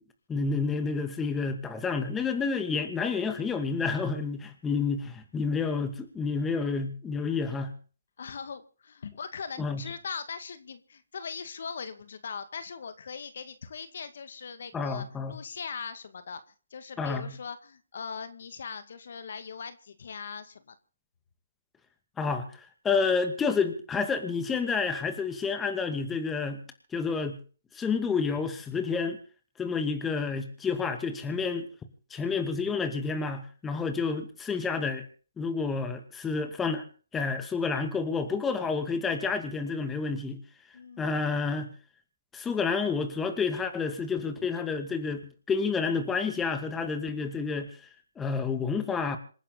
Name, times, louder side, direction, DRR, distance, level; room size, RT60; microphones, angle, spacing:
voice 1, 0.3-7.7 9.6-9.8 14.7-15.3 17.0-17.3 22.2-26.6 26.9-27.4 27.7-29.2 29.6-31.7 32.1-35.1 35.4-36.8 37.1-40.4 41.0-41.7 42.3-47.8 48.2-49.2, left 5 dB, 10° left, 7 dB, 2.3 m, -29 dB
voice 2, 8.2-16.4 16.7-20.7 40.7-41.3, left 6 dB, 60° left, 11 dB, 2.2 m, -40 dB
27.0 x 11.0 x 4.2 m, 0.39 s
hypercardioid pair, 150°, 0 cm